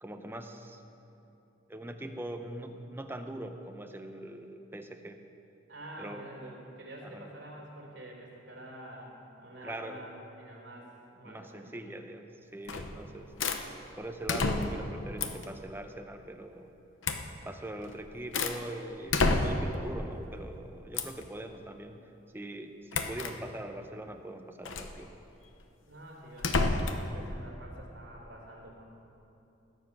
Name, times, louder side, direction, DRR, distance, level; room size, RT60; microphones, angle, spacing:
voice 1, 0.0-0.8 1.7-5.2 6.0-6.2 7.0-7.3 9.6-10.0 11.2-12.2 12.5-13.3 14.0-16.7 17.4-22.0 22.3-25.1, right 1 dB, 10° right, 6 dB, 0.7 m, -42 dB
voice 2, 5.7-11.8 12.8-13.0 13.3-13.5 25.9-28.8, right 1 dB, 65° right, -2 dB, 3.4 m, -48 dB
sound 1, 12.7-13.0 13.4-13.6 14.3-14.9 15.2-15.5 17.0-17.3 17.8-18.6 19.1-19.8 20.9-21.2 22.9-23.4 24.6-24.9 26.4-27.1, left 3 dB, 75° left, 0.9 m, -29 dB
20.0 x 7.6 x 6.0 m, 2.9 s
head